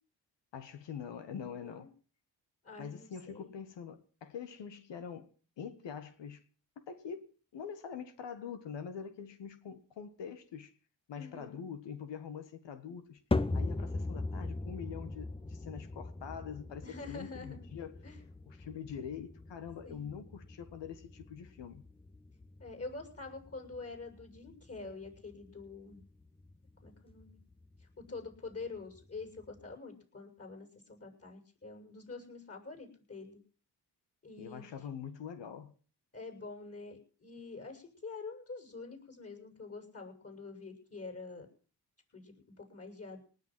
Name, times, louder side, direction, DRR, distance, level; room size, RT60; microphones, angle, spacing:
voice 1, 0.5-1.9 2.8-5.3 5.6-6.4 6.9-10.7 11.1-13.2 13.5-18.0 18.5-21.8 34.4-35.7, left 7 dB, 70° left, 1.6 m, -44 dB
voice 2, 2.6-3.5 11.1-11.6 16.8-17.7 18.0-18.2 19.8-20.1 22.6-26.0 26.8-27.4 27.8-33.4 34.2-34.6 36.1-41.5 42.1-43.2, left 3 dB, 30° left, 7.1 m, -46 dB
sound 1, 13.3-29.7, left 2 dB, 10° left, 0.9 m, -41 dB
19.0 x 7.1 x 7.6 m
supercardioid pair, 45°, 45 cm